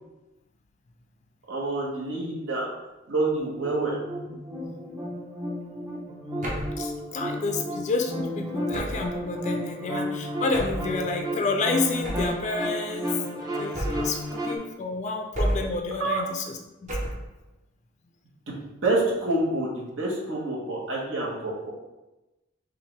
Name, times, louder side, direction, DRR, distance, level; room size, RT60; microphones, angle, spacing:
voice 1, 1.5-2.7 3.1-4.0 16.0-16.2 18.5-18.6 18.8-21.7, right 2 dB, 75° right, -4 dB, 1.3 m, -27 dB
sound 1, 3.3-14.6, equal, 20° right, 0.6 m, -33 dB
sound 2, 6.4-6.8 8.7-9.2 10.5-10.9 12.0-12.4 13.7-14.2 15.3-15.8 16.9-17.3, equal, 40° right, 0.9 m, -30 dB
voice 2, 6.8-17.1, left 3 dB, 40° left, 3 dB, 0.4 m, -30 dB
5.6 x 2.5 x 3.2 m, 1.0 s
head